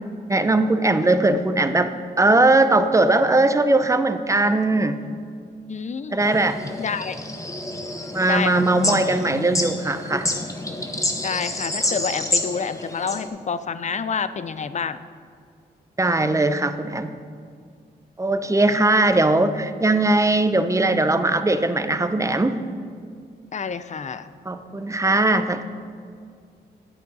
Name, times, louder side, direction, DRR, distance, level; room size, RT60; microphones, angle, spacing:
voice 1, 0.3-5.0 6.1-6.6 8.1-10.3 16.0-17.1 18.2-22.6 24.5-25.6, right 2 dB, 15° right, 10 dB, 0.6 m, -20 dB
voice 2, 5.7-6.3 6.8-7.2 8.3-9.1 11.2-15.0 23.5-24.3, left 6 dB, 40° left, 13 dB, 0.5 m, -28 dB
sound 1, 6.2-13.3, left 1 dB, 20° left, 1.1 m, -28 dB
10.0 x 8.3 x 4.1 m, 2.2 s
cardioid pair, 60°, 18 cm